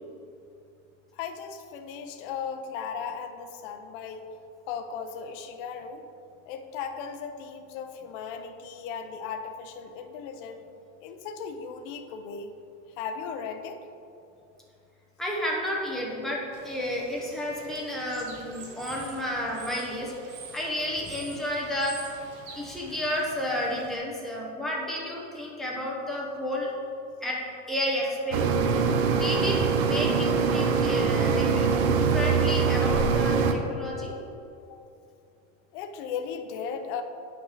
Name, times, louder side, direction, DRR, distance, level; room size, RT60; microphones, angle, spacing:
voice 1, 1.1-4.3 4.7-6.0 6.5-10.6 11.0-12.5 12.9-13.9 34.7-34.8 35.7-37.0, left 6 dB, 45° left, 6 dB, 0.6 m, -37 dB
voice 2, 15.2-20.1 20.5-22.0 22.5-26.7 27.2-27.4 27.7-28.4 29.1-34.1, left 1 dB, ahead, -4 dB, 0.6 m, -31 dB
Bird / Water, 16.5-24.0, right 4 dB, 35° right, 0.9 m, -46 dB
sound 1, 28.3-33.5, right 5 dB, 60° right, 0.7 m, -23 dB
8.9 x 5.9 x 4.0 m, 2.7 s
supercardioid pair, 180°, 36 cm